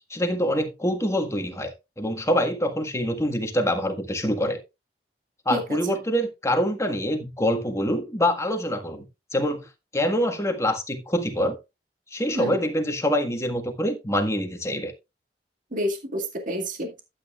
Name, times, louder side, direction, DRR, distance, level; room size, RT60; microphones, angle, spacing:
voice 1, 0.1-4.6 5.4-9.7 9.9-11.6 12.1-14.9, equal, 15° left, 1.6 m, -25 dB
voice 2, 15.7-17.0, equal, 50° right, 2.1 m, -29 dB
12.0 x 8.7 x 2.4 m
head